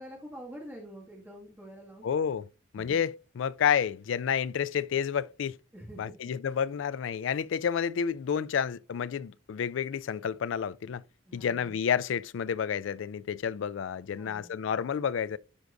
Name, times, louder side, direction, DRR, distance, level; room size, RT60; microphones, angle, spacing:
voice 1, 0.0-2.1 2.7-3.0 5.7-6.3 11.3-11.8 14.1-14.5, equal, 10° right, 2.0 m, -46 dB
voice 2, 2.0-2.4 2.7-5.6 6.0-11.0 11.3-15.4, left 7 dB, 70° left, 0.3 m, -30 dB
11.5 x 4.7 x 2.6 m
head